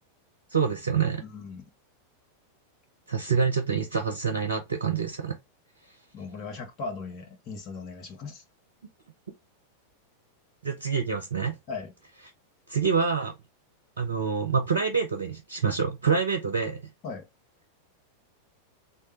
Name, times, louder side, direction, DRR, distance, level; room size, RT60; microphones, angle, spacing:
voice 1, 0.5-1.2 3.1-5.4 10.6-11.6 12.7-13.3 14.0-16.8, right 6 dB, 70° right, 0.6 m, -26 dB
voice 2, 1.2-1.6 6.1-8.4 11.7-11.9 17.0-17.3, left 4 dB, 35° left, 0.8 m, -38 dB
3.2 x 2.2 x 3.1 m
figure-of-eight pair, 90°, 0 cm